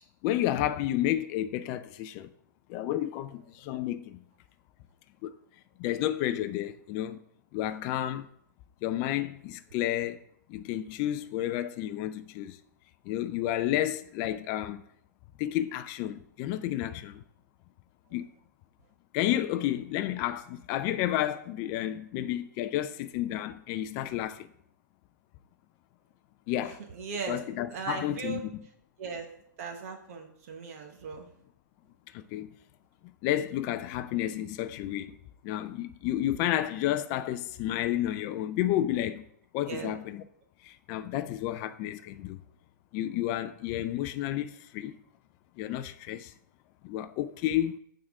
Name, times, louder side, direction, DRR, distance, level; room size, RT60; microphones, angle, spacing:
voice 1, 0.2-2.3 2.7-4.2 5.2-5.4 5.8-7.2 7.5-8.3 8.8-10.2 10.5-12.6 13.1-14.8 15.4-17.2 18.1-18.3 19.1-24.5 26.5-26.8 27.3-28.4 32.1-32.5 33.2-35.1 35.4-39.2 39.5-40.2 40.6-42.4 42.9-45.0 45.6-46.3 46.8-47.8, left 13 dB, 30° left, 0.3 m, -31 dB
voice 2, 26.6-27.4 27.7-28.4 29.0-29.3 29.6-31.3 39.6-39.9, right 5 dB, 45° right, 1.0 m, -38 dB
8.5 x 3.7 x 4.7 m
hypercardioid pair, 140°, 10 cm